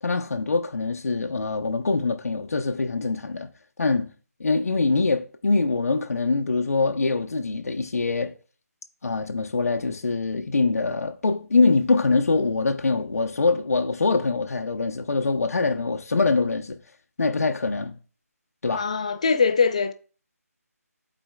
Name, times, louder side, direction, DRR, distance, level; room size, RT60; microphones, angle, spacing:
voice 1, 0.0-3.5 3.8-4.1 4.4-8.3 9.0-16.8 17.2-18.0 18.6-18.9, left 3 dB, 65° left, 0.8 m, -24 dB
voice 2, 18.7-19.9, left 5 dB, 25° left, 0.4 m, -22 dB
11.5 x 4.3 x 2.3 m
figure-of-eight pair, 170°, 9 cm